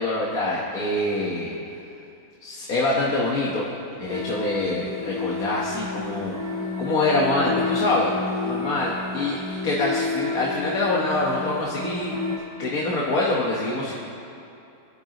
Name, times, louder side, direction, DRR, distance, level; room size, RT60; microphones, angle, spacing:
voice 1, 0.0-1.5 2.4-3.6 4.0-6.3 6.8-8.1 8.4-12.1 12.6-13.9, left 2 dB, 70° left, -4 dB, 1.8 m, -25 dB
sound 1, 4.1-12.4, left 3 dB, 20° left, 3.4 m, -30 dB
25.5 x 10.0 x 3.0 m, 2.7 s
omnidirectional pair, 1.6 m